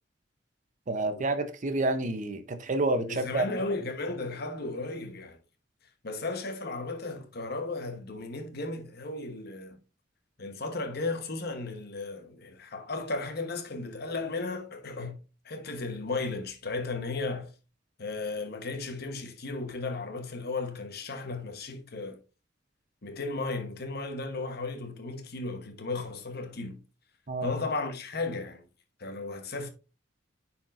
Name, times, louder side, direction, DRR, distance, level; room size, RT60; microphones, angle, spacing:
voice 1, 0.9-3.4 27.3-27.5, right 2 dB, 40° right, 0.7 m, -29 dB
voice 2, 3.1-5.4 6.0-9.8 10.4-17.5 18.0-22.2 23.0-26.8 27.4-28.7 29.0-29.7, left 3 dB, 55° left, 1.1 m, -35 dB
9.7 x 4.4 x 2.5 m
head